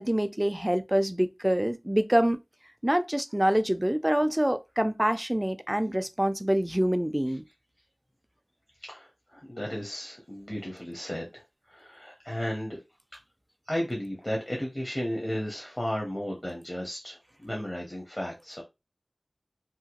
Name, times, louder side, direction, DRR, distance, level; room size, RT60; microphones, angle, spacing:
voice 1, 0.0-2.4 2.8-7.4, right 1 dB, 15° right, 0.3 m, -26 dB
voice 2, 8.8-11.4 11.7-12.8 13.7-18.6, equal, 30° left, 0.7 m, -34 dB
2.8 x 2.2 x 2.8 m
wide cardioid pair, 45°, 0 cm